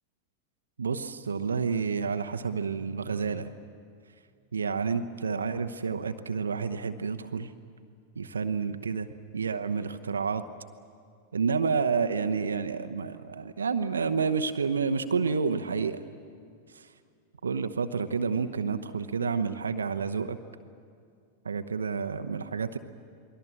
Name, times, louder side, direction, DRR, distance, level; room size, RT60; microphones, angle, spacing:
voice 1, 0.8-3.5 4.5-7.5 8.2-9.1 9.3-10.4 11.3-16.0 16.7-16.9 17.4-20.4 21.4-22.8, right 5 dB, 70° right, 8 dB, 1.0 m, -29 dB
28.0 x 21.5 x 7.6 m, 2.3 s
figure-of-eight pair, 90°, 0 cm